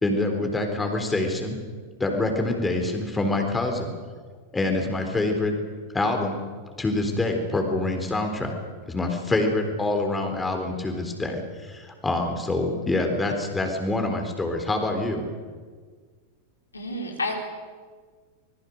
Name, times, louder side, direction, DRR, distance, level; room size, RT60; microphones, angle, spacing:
voice 1, 0.0-1.6 2.0-3.9 4.5-5.6 5.9-6.4 6.8-8.5 8.9-15.3, left 2 dB, 10° left, 4 dB, 4.0 m, -26 dB
voice 2, 16.7-17.3, left 2 dB, 80° left, 1 dB, 4.4 m, -29 dB
25.5 x 21.0 x 6.6 m, 1.5 s
figure-of-eight pair, 90°, 0 cm